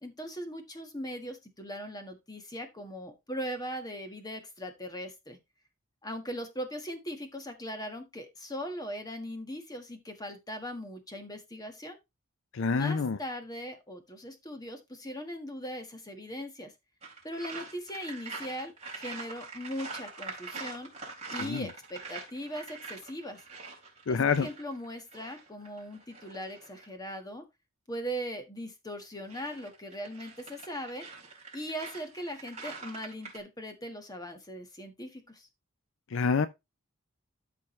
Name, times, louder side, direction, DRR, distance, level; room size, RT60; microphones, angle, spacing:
voice 1, 0.0-5.4 6.0-12.0 12.7-16.7 17.2-20.9 21.3-23.4 24.1-27.4 27.9-31.1 31.5-35.5, equal, 20° left, 1.5 m, -39 dB
voice 2, 12.5-13.2 21.4-21.6 24.1-24.5 36.1-36.5, left 5 dB, 60° left, 0.5 m, -27 dB
sound 1, 17.0-26.9 29.0-33.4, right 4 dB, 30° right, 3.9 m, -44 dB
13.0 x 5.1 x 3.2 m
head